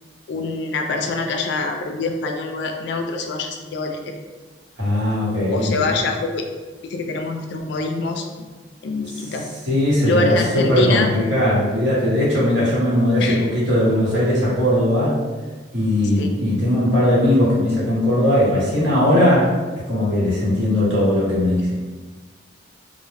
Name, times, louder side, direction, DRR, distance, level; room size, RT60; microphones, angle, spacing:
voice 1, 0.3-4.2 5.5-6.5 6.8-8.5 8.8-9.5 10.0-11.1 13.2-13.5 16.2-16.4, left 3 dB, 65° left, 4 dB, 0.3 m, -25 dB
voice 2, 4.8-5.9 9.7-15.2 15.7-21.7, left 1 dB, 70° right, -8 dB, 1.0 m, -19 dB
2.0 x 2.0 x 3.2 m, 1.3 s
head